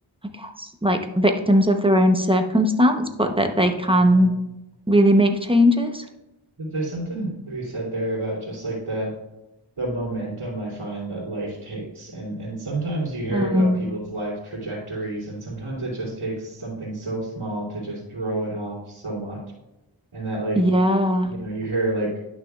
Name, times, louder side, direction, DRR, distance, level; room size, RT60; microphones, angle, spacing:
voice 1, 0.4-4.3 4.9-6.0 13.3-13.8 20.6-21.3, equal, 10° right, 5 dB, 0.9 m, -19 dB
voice 2, 3.9-4.3 6.6-9.1 9.8-19.4 20.1-20.6 21.3-22.2, right 2 dB, 80° right, -6 dB, 3.0 m, -29 dB
11.0 x 6.3 x 2.4 m, 0.93 s
wide cardioid pair, 45°, 49 cm